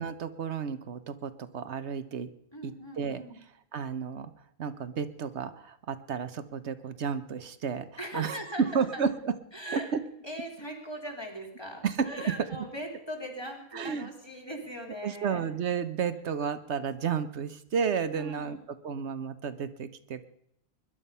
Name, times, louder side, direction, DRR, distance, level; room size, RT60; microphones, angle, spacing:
voice 1, 0.0-2.3 2.6-3.2 3.7-4.3 4.6-9.3 9.7-10.0 11.8-12.5 13.7-14.1 15.0-18.6 18.8-20.2, right 6 dB, 80° right, 11 dB, 1.2 m, -32 dB
voice 2, 2.5-3.4 8.0-9.0 9.5-9.9 10.2-15.4 18.1-18.6, equal, 25° left, 1 dB, 3.4 m, -40 dB
21.0 x 11.5 x 5.6 m, 0.75 s
omnidirectional pair, 1.1 m